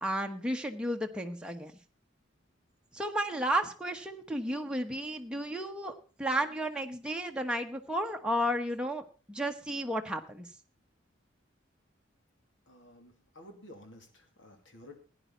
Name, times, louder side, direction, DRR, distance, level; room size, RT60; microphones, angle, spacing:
voice 1, 0.0-1.7 2.9-10.5, right 1 dB, 5° right, 3 dB, 1.1 m, -33 dB
voice 2, 12.7-15.0, left 1 dB, 75° left, 4 dB, 2.8 m, -52 dB
16.0 x 10.5 x 4.0 m, 0.35 s
head